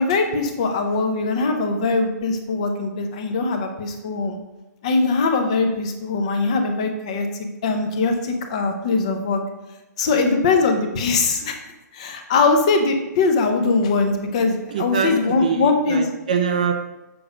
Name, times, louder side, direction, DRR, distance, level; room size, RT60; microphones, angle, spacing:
voice 1, 0.0-4.4 4.8-9.4 10.0-11.6 11.9-16.1, left 3 dB, 20° left, 5 dB, 0.6 m, -21 dB
voice 2, 14.7-16.8, right 7 dB, 25° right, 6 dB, 0.4 m, -24 dB
6.9 x 6.5 x 5.0 m, 1.1 s
hypercardioid pair, 180°, 10 cm